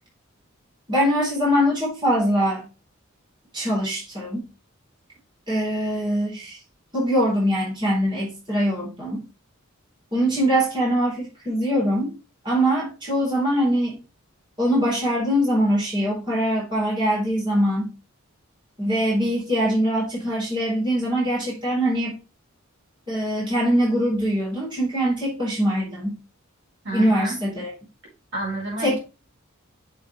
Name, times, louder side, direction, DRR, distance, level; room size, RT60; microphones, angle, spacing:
voice 1, 0.9-2.7 3.5-4.5 5.5-6.6 6.9-9.3 10.1-12.2 12.4-14.0 14.6-17.9 18.8-22.2 23.1-26.2 26.9-27.7 28.8-29.0, equal, 20° right, -5 dB, 3.9 m, -23 dB
voice 2, 26.8-27.4 28.3-29.0, right 1 dB, 55° right, -3 dB, 4.7 m, -29 dB
6.9 x 6.8 x 3.2 m, 0.31 s
head